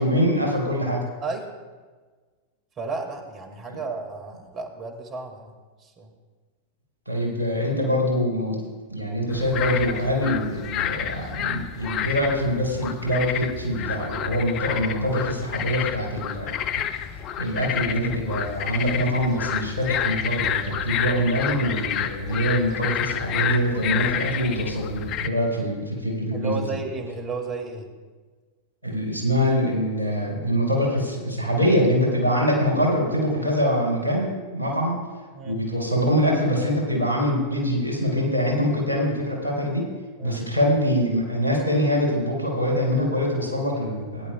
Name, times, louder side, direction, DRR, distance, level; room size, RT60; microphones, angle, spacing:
voice 1, 0.0-1.0 3.7-3.8 7.1-8.6 8.9-16.8 17.4-26.7 28.8-35.0 35.4-39.9 40.2-44.3, equal, 85° left, -2 dB, 4.0 m, -24 dB
voice 2, 2.8-5.5 5.8-6.1 26.3-27.9 35.3-35.6 40.2-40.4, right 4 dB, 30° right, 4 dB, 2.0 m, -33 dB
sound 1, 9.3-25.3, left 9 dB, 35° left, 0.6 m, -29 dB
19.0 x 10.5 x 2.3 m, 1.4 s
figure-of-eight pair, 90°, 0 cm